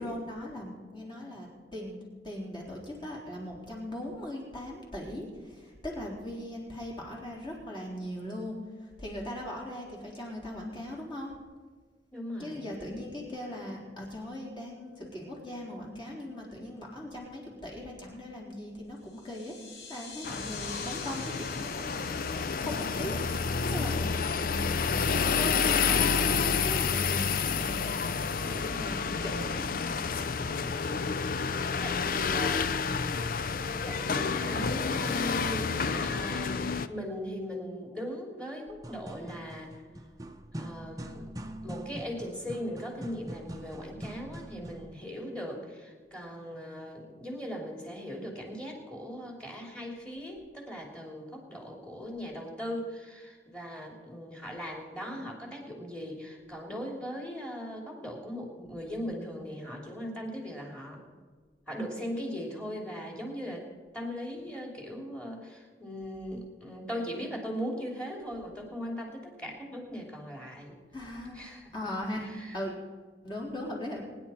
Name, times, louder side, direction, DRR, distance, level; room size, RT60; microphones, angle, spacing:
voice 1, 0.0-2.0 2.2-11.3 12.4-19.6 19.9-23.2 23.7-27.8 28.3-30.2 70.9-72.3 72.5-72.8 73.2-74.0, left 1 dB, 25° left, -3 dB, 3.9 m, -39 dB
voice 2, 12.1-12.7 31.8-32.7 33.8-35.7 36.0-39.8 40.6-41.3 41.6-61.0 61.7-63.7 63.9-70.8 71.3-71.7 72.2-72.6, equal, 5° left, 0 dB, 3.0 m, -39 dB
sound 1, 19.0-25.1, left 4 dB, 70° left, 2.6 m, -46 dB
sound 2, 20.2-36.9, left 5 dB, 50° left, 0.5 m, -29 dB
sound 3, 38.7-44.9, right 1 dB, 20° right, 0.8 m, -43 dB
24.0 x 10.5 x 4.4 m, 1.5 s
head